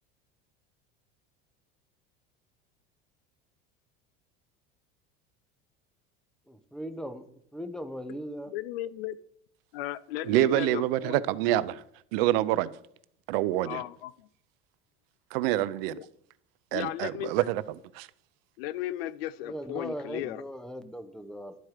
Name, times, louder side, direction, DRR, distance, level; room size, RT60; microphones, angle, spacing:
voice 1, 6.5-7.3 7.5-8.5 19.4-21.6, equal, ahead, 0.8 m, -38 dB
voice 2, 8.5-9.2 9.7-11.2 13.6-14.3 15.9-16.1 16.7-17.5 18.6-20.4, left 14 dB, 90° left, 0.5 m, -36 dB
voice 3, 10.2-11.8 12.1-12.7 13.3-13.8 15.3-16.0 16.7-17.6 17.9-18.1, right 14 dB, 80° right, 0.5 m, -26 dB
11.0 x 4.4 x 4.9 m
supercardioid pair, 105°, 29 cm